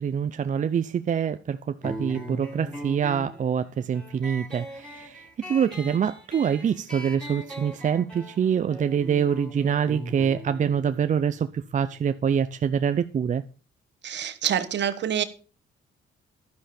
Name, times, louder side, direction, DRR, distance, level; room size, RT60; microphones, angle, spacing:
voice 1, 0.0-13.4, right 7 dB, 40° right, 0.5 m, -25 dB
sound 1, 1.8-12.9, right 1 dB, 5° left, 4.3 m, -40 dB
voice 2, 14.0-15.2, right 9 dB, 60° right, 1.4 m, -26 dB
11.5 x 10.0 x 4.3 m
cardioid pair, 90°, 20 cm